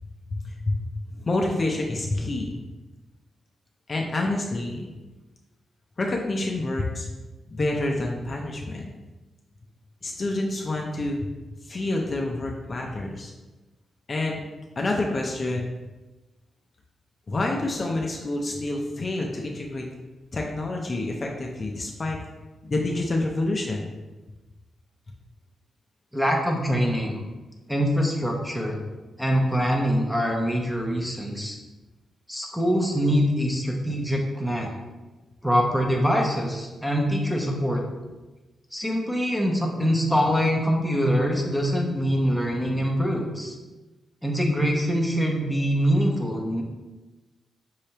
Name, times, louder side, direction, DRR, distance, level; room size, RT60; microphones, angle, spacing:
voice 1, 0.3-0.8 1.1-2.6 3.9-4.9 6.0-7.1 7.5-8.9 10.0-11.3 11.6-13.3 14.1-14.4 14.8-15.7 17.3-19.9 20.3-22.2 22.6-23.9, left 2 dB, 35° left, 0 dB, 0.5 m, -28 dB
voice 2, 26.1-27.2 27.7-28.8 29.2-31.6 32.3-34.7 35.4-37.8 38.7-43.5 44.2-46.6, equal, ahead, 0 dB, 0.7 m, -24 dB
5.4 x 3.3 x 2.8 m, 1.1 s
wide cardioid pair, 130°, 0 cm